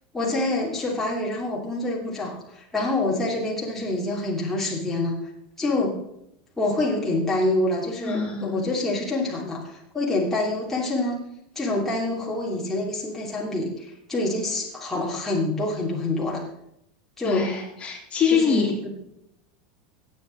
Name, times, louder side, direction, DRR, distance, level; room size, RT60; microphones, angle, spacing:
voice 1, 0.1-5.2 5.6-6.0 6.6-11.2 11.5-16.4 17.2-17.5 18.3-18.9, left 2 dB, 5° left, -5 dB, 2.9 m, -26 dB
voice 2, 8.0-8.6 17.2-18.9, left 6 dB, 30° left, 0 dB, 3.1 m, -24 dB
17.0 x 8.5 x 3.9 m, 0.78 s
supercardioid pair, 125°, 5 cm